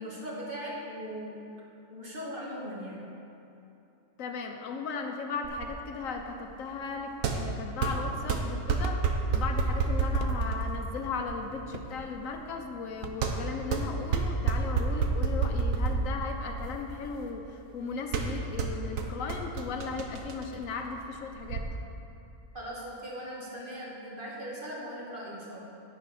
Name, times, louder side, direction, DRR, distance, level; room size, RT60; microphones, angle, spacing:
voice 1, 0.0-1.4 1.9-3.1 22.5-25.6, equal, 40° right, -5 dB, 2.1 m, -39 dB
voice 2, 4.2-9.0 9.3-21.7, left 4 dB, 90° left, 3 dB, 1.1 m, -36 dB
sound 1, 5.4-21.6, right 4 dB, 90° right, 1.2 m, -31 dB
sound 2, 8.8-14.2, right 6 dB, 60° right, 0.7 m, -44 dB
10.5 x 8.8 x 4.2 m, 2.9 s
omnidirectional pair, 1.4 m